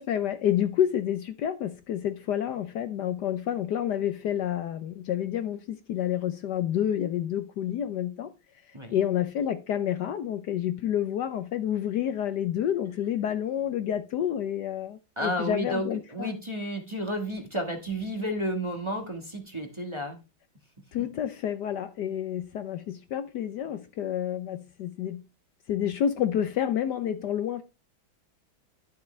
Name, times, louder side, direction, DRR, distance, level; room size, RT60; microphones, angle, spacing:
voice 1, 0.0-8.3 8.9-16.3 20.9-25.2 25.7-27.6, left 10 dB, 70° left, 1.2 m, -29 dB
voice 2, 15.2-20.2 21.0-21.1, equal, 15° right, 1.3 m, -32 dB
12.0 x 6.8 x 3.2 m
omnidirectional pair, 2.1 m